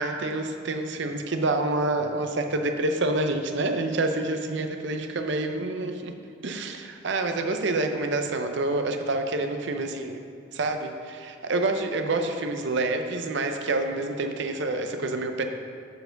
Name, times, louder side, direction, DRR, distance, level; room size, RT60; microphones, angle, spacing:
voice 1, 0.0-6.1 6.4-10.2 10.5-15.4, right 2 dB, 60° right, 6 dB, 0.6 m, -27 dB
6.7 x 4.7 x 6.4 m, 2.3 s
head